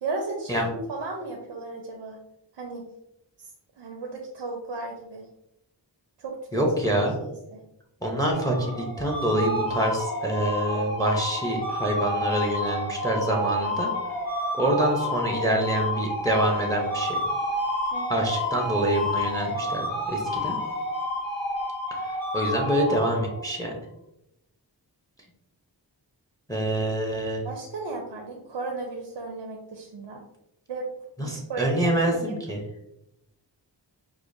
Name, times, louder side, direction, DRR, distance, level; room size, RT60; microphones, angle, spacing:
voice 1, 0.0-0.6 0.9-2.2 2.5-2.9 3.4-3.5 3.8-5.3 6.2-7.6 17.9-18.2 27.4-30.2 30.7-30.9 31.2-32.4, right 3 dB, 85° right, 0 dB, 0.6 m, -35 dB
voice 2, 6.5-7.1 8.0-13.9 14.5-17.2 18.1-20.6 22.0-23.8 26.5-27.4 31.2-32.6, right 1 dB, 10° left, 0 dB, 0.6 m, -26 dB
sound 1, 8.3-23.6, left 1 dB, 85° left, 1.3 m, -30 dB
4.8 x 2.1 x 2.5 m, 0.87 s
wide cardioid pair, 70°, 44 cm